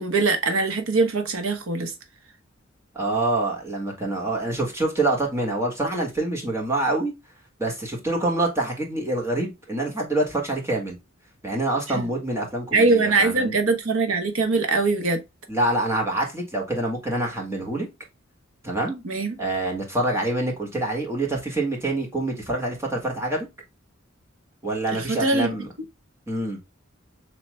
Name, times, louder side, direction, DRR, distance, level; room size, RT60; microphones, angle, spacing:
voice 1, 0.0-1.9 11.9-12.0 12.7-15.2 19.0-19.4 24.9-25.5, right 3 dB, 90° right, 1.1 m, -22 dB
voice 2, 3.0-7.1 7.6-11.0 11.4-13.5 15.5-17.9 18.6-19.0 19.4-23.5 24.6-25.7 26.3-26.6, right 2 dB, 15° right, 1.7 m, -26 dB
7.0 x 2.9 x 2.2 m
head